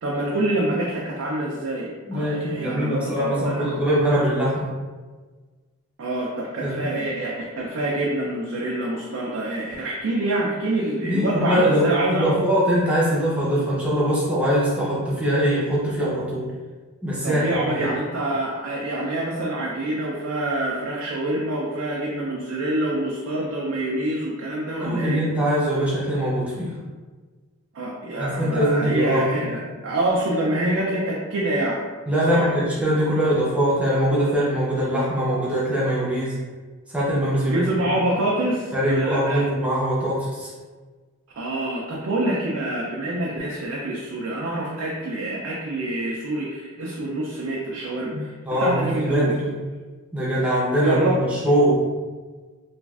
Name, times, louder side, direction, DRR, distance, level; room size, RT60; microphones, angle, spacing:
voice 1, 0.0-3.8 6.0-12.4 17.2-25.2 27.7-31.8 32.3-32.5 37.4-39.5 41.4-49.4 50.8-51.2, right 1 dB, 60° right, -3 dB, 0.4 m, -26 dB
voice 2, 2.1-4.7 6.6-7.1 11.0-16.5 17.0-17.9 24.8-26.7 28.2-29.4 32.1-36.4 36.9-37.6 38.7-40.5 48.4-49.5 50.1-51.1 51.4-51.8, equal, 5° right, -7 dB, 0.5 m, -22 dB
3.1 x 2.4 x 2.3 m, 1.4 s
head